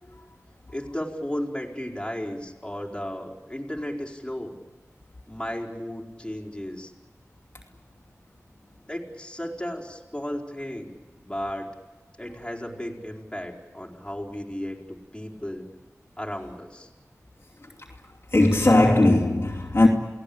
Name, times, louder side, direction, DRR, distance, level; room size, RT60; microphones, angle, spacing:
voice 1, 0.7-4.6 5.3-6.9 8.9-11.7 12.2-14.8 15.1-15.7 16.2-16.9, left 1 dB, 15° left, 4.4 m, -34 dB
voice 2, 18.3-19.9, left 2 dB, 50° left, 2.6 m, -19 dB
29.5 x 18.5 x 8.7 m
wide cardioid pair, 60°, 6 cm